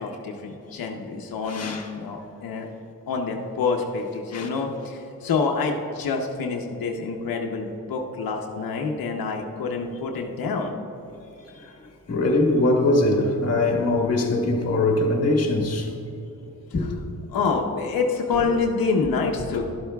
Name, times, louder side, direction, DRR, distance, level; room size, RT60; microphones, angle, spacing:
voice 1, 0.0-2.7 3.1-10.8 17.3-19.7, left 4 dB, 85° left, 0.8 m, -27 dB
voice 2, 1.5-1.9 4.3-4.5 11.5-11.8 12.1-15.9 16.7-16.9 19.5-19.6, left 2 dB, 45° left, 1.5 m, -22 dB
12.0 x 12.0 x 2.3 m
wide cardioid pair, 145°, 34 cm